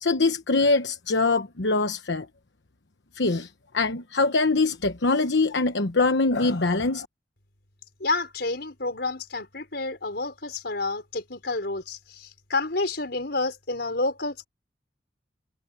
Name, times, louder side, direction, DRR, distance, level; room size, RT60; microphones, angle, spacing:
voice 1, 0.0-2.3 3.1-3.5 3.7-7.1, left 3 dB, 85° left, 1.1 m, -23 dB
voice 2, 8.0-14.5, left 3 dB, 65° left, 5.4 m, -29 dB
head